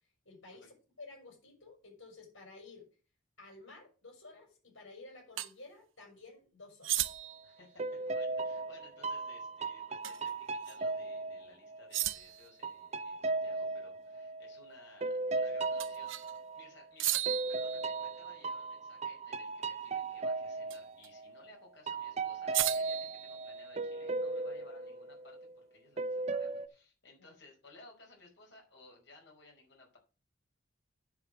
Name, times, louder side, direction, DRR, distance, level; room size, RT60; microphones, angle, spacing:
voice 1, 0.3-2.9 3.4-7.0 27.2-27.3, left 3 dB, 85° left, 1 dB, 5.3 m, -53 dB
sound 1, 5.4-5.5 6.8-7.5 10.0-10.3 10.7-10.8 11.9-12.5 15.8-16.3 17.0-18.4 20.7-21.1 22.5-23.9, right 14 dB, 85° right, 0.7 m, -35 dB
sound 2, 7.1-7.4 7.8-12.1 12.6-16.8 17.3-21.5 21.9-25.6 26.0-26.7, right 3 dB, 35° right, 0.6 m, -37 dB
voice 2, 7.4-17.2 17.5-30.0, left 3 dB, 65° left, -1 dB, 5.3 m, -59 dB
10.5 x 5.1 x 6.6 m, 0.35 s
head